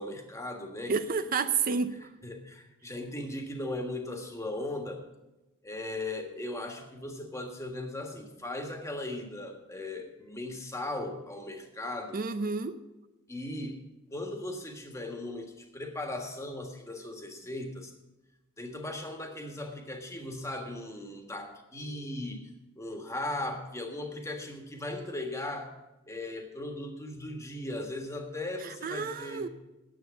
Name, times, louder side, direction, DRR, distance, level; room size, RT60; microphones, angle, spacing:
voice 1, 0.0-0.9 2.2-5.1 5.6-12.2 13.3-13.8 14.1-17.9 18.6-22.5 22.8-25.7 26.1-29.5, left 1 dB, 15° left, 4 dB, 1.5 m, -38 dB
voice 2, 0.9-2.0 12.1-12.8 28.6-29.5, right 5 dB, 45° right, 11 dB, 0.5 m, -30 dB
9.4 x 8.5 x 8.4 m, 1.0 s
head